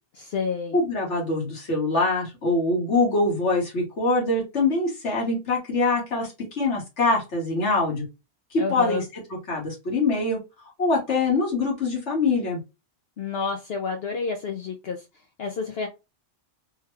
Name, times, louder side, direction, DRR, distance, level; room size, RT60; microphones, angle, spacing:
voice 1, 0.2-0.8 8.6-9.0 13.2-15.0 15.4-15.9, left 5 dB, 65° left, 0.8 m, -29 dB
voice 2, 0.7-8.0 8.5-9.0 9.5-10.4 10.8-12.6, left 3 dB, 80° left, 1.8 m, -24 dB
3.6 x 2.2 x 3.1 m
omnidirectional pair, 1.2 m